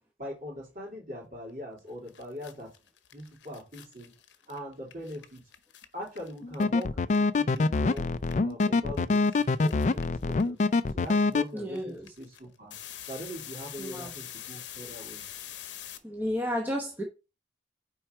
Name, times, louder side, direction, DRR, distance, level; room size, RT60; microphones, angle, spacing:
voice 1, 0.2-2.7 3.1-4.1 4.5-5.4 5.9-6.9 7.2-8.1 8.4-9.3 9.6-10.6 10.9-12.7 13.1-15.2, equal, 50° right, 3.4 m, -41 dB
sound 1, 1.8-1.9 2.1-7.6 7.9-16.0, left 11 dB, 85° left, 0.8 m, -45 dB
sound 2, 6.4-11.4, left 3 dB, 40° left, 0.3 m, -25 dB
voice 2, 11.5-12.1 13.8-14.1 16.0-17.0, equal, 10° right, 0.9 m, -32 dB
5.9 x 4.7 x 4.7 m
head